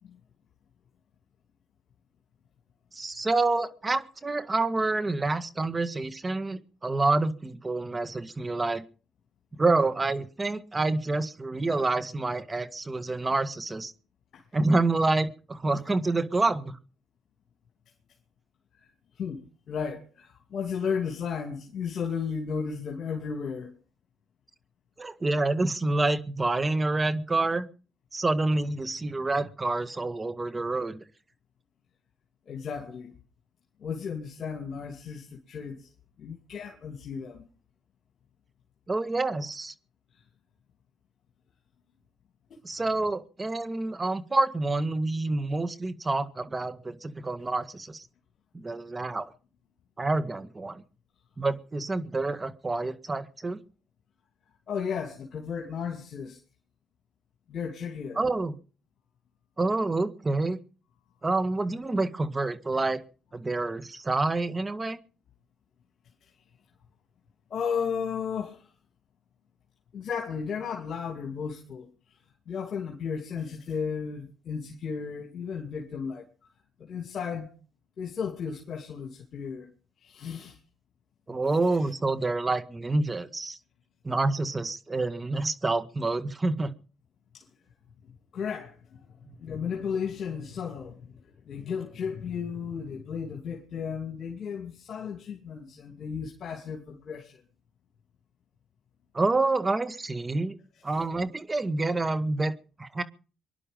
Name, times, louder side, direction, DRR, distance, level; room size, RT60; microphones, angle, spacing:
voice 1, 2.9-8.8 9.6-13.9 14.5-16.8 25.0-27.7 28.1-31.0 38.9-39.7 42.6-48.0 48.5-49.2 50.0-50.8 51.4-53.6 58.2-58.5 59.6-60.6 61.2-63.0 63.3-65.0 81.3-83.6 84.0-86.7 99.1-100.6 100.8-102.5 102.8-103.0, right 2 dB, 25° right, 1.8 m, -27 dB
voice 2, 19.2-23.7 32.5-33.1 33.8-35.9 36.2-37.5 40.1-40.2 54.7-56.4 57.5-58.2 67.5-68.7 69.9-71.9 72.5-76.3 76.8-77.5 78.0-79.7 80.0-80.6 87.3-87.5 88.3-88.8 89.1-97.4, left 6 dB, 65° left, 2.6 m, -34 dB
24.0 x 11.0 x 5.3 m
supercardioid pair, 65°, 0 cm